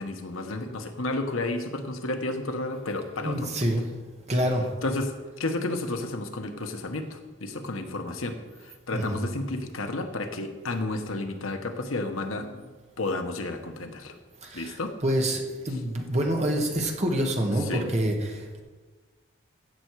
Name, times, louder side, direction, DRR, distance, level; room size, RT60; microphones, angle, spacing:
voice 1, 0.0-3.7 4.5-5.1 5.4-14.2 14.5-14.9 15.7-15.8 17.6-17.9, left 2 dB, 90° left, 6 dB, 1.2 m, -32 dB
voice 2, 3.2-3.8 4.3-4.6 8.9-9.1 14.5-14.7 15.0-18.6, right 1 dB, 35° right, 1 dB, 1.6 m, -26 dB
16.0 x 6.8 x 4.7 m, 1.3 s
head